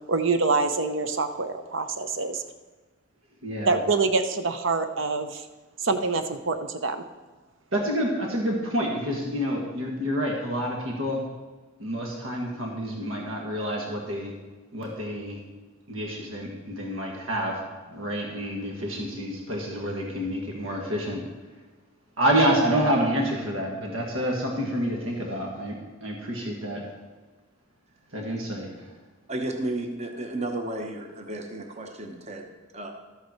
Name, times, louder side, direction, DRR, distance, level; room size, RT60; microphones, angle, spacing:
voice 1, 0.1-2.4 3.7-5.5 5.8-7.0, right 3 dB, 65° right, 8 dB, 0.8 m, -25 dB
voice 2, 3.4-3.8 7.7-11.2 11.8-14.3 14.7-15.4 15.9-17.6 17.9-21.3 22.2-26.9 28.1-28.9, equal, 85° right, -1 dB, 1.9 m, -28 dB
voice 3, 29.3-32.9, right 1 dB, 35° right, 4 dB, 0.9 m, -33 dB
12.5 x 8.2 x 4.5 m, 1.3 s
head